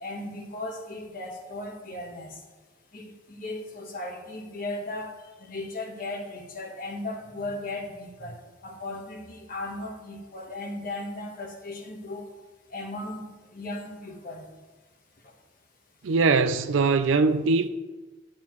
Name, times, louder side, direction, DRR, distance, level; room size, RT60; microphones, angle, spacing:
voice 1, 0.0-2.4 2.9-5.1 5.4-8.4 8.6-12.3 12.7-13.2 13.5-14.5, left 2 dB, 45° left, 1.3 m, -36 dB
voice 2, 16.0-17.7, right 4 dB, 70° right, 0.5 m, -21 dB
11.5 x 7.1 x 3.1 m
head